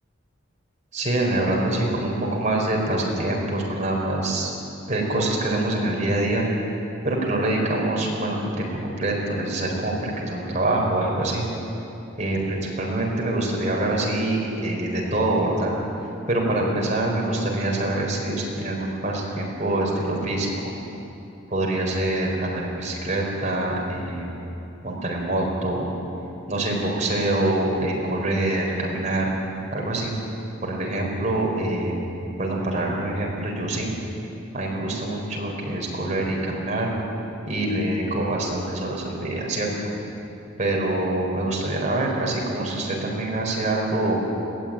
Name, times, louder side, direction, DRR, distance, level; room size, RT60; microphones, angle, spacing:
voice 1, 0.9-4.5 4.9-6.4 7.0-11.4 12.2-15.7 16.3-20.7 21.5-24.4 24.8-25.9 26.5-29.3 29.7-30.1 30.6-31.9 32.4-33.9 34.5-36.9 37.5-39.9 40.6-44.3, right 1 dB, 35° right, -1 dB, 4.6 m, -25 dB
21.5 x 17.5 x 9.1 m, 2.8 s
head